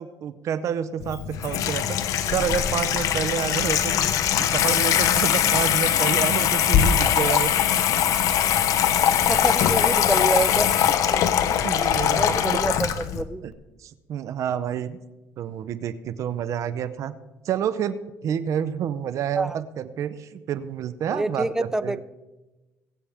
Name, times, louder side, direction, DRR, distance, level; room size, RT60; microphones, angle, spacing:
voice 1, 0.0-4.1 4.4-7.5 11.6-12.6 13.4-13.5 13.8-15.0 15.4-17.1 17.4-22.0, right 9 dB, 60° right, 13 dB, 0.7 m, -29 dB
Water tap faucet / Sink (filling or washing), 1.0-13.2, left 9 dB, 65° left, 0.9 m, -21 dB
voice 2, 9.3-10.7 11.1-11.2 12.0-13.5 19.4-19.6 21.1-22.0, right 2 dB, 10° right, 15 dB, 0.5 m, -27 dB
20.5 x 8.7 x 3.5 m, 1.1 s
cardioid pair, 100°, 6 cm